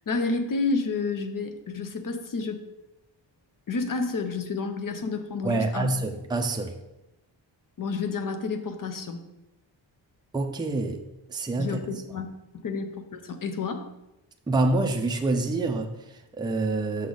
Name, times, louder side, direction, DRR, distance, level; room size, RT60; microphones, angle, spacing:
voice 1, 0.1-2.6 3.7-5.9 7.8-9.2 11.6-12.3 12.5-13.9, left 4 dB, 45° left, 7 dB, 0.7 m, -30 dB
voice 2, 5.4-6.7 10.3-11.0 11.3-11.8 14.5-17.1, right 2 dB, 10° right, 3 dB, 0.5 m, -27 dB
6.6 x 6.2 x 3.9 m, 0.92 s
wide cardioid pair, 175°, 46 cm